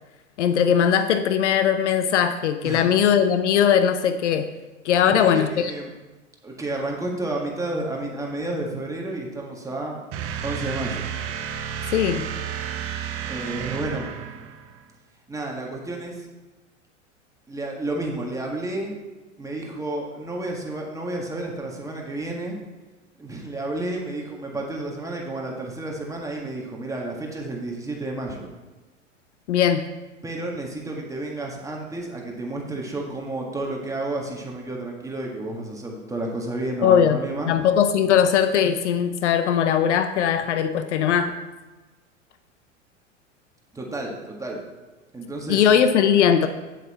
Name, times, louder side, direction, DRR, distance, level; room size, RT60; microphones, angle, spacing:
voice 1, 0.4-4.5 4.8-5.7 11.9-12.3 29.5-29.9 36.8-37.2 37.5-41.4 45.5-46.5, left 8 dB, 65° left, 10 dB, 0.7 m, -20 dB
voice 2, 5.0-5.9 6.4-10.0 10.4-11.1 13.3-14.1 15.3-16.3 17.5-18.9 19.4-22.6 23.2-28.5 30.2-37.5 43.7-44.6 45.1-45.6, right 2 dB, 10° right, -1 dB, 1.7 m, -31 dB
sound 1, 10.1-14.8, right 8 dB, 35° right, 0.9 m, -32 dB
8.3 x 7.8 x 4.3 m, 1.2 s
figure-of-eight pair, 90°, 38 cm